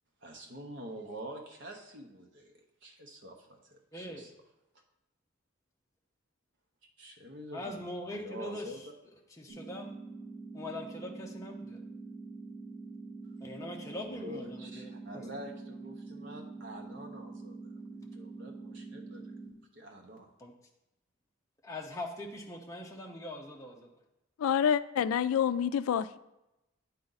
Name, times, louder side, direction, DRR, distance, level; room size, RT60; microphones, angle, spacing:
voice 1, 0.2-2.5 2.8-4.3 7.0-8.8 14.0-17.7 18.0-19.3 19.7-20.3, right 1 dB, 60° right, 2 dB, 1.0 m, -46 dB
voice 2, 3.9-4.2 7.5-8.7 9.4-9.9 10.5-11.8 13.4-15.3 17.9-18.0 20.4-20.5 21.6-23.9, left 1 dB, 15° left, 0 dB, 0.7 m, -42 dB
sound 1, 9.5-19.5, right 3 dB, 10° right, 2.4 m, -45 dB
voice 3, 24.4-26.2, left 8 dB, 90° left, 14 dB, 0.3 m, -27 dB
8.9 x 4.3 x 4.0 m, 0.93 s
head